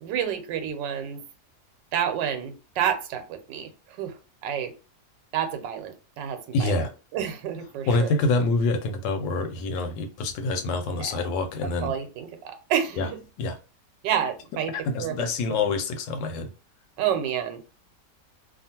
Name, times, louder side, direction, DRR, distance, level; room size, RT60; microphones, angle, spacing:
voice 1, 0.0-1.2 1.9-3.7 4.0-4.1 4.4-4.7 5.3-6.8 7.1-8.1 11.0-11.2 11.8-13.2 14.0-14.7 15.0-15.2 17.0-17.6, right 9 dB, 85° right, 7 dB, 1.3 m, -29 dB
voice 2, 6.5-6.9 7.9-11.9 13.0-13.1 13.4-13.6 14.7-16.5, left 3 dB, 90° left, 7 dB, 1.3 m, -26 dB
2.8 x 2.4 x 2.8 m, 0.32 s
omnidirectional pair, 1.9 m